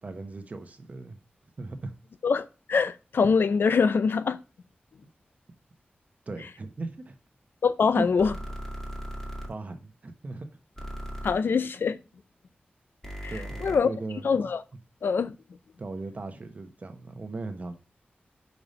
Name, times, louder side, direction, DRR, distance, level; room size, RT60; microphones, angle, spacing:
voice 1, 0.0-1.2 1.6-1.9 6.3-7.2 7.9-8.1 9.5-10.5 13.3-14.5 15.8-17.8, right 2 dB, 45° right, 1.0 m, -37 dB
voice 2, 2.2-4.4 7.6-8.3 11.2-12.0 13.2-13.3 13.6-13.9 14.2-14.6 15.0-15.3, left 5 dB, 80° left, 0.5 m, -24 dB
sound 1, 8.2-9.5 10.8-11.3 13.0-13.8, equal, 10° left, 1.6 m, -37 dB
5.3 x 4.8 x 5.3 m
wide cardioid pair, 130°, 4 cm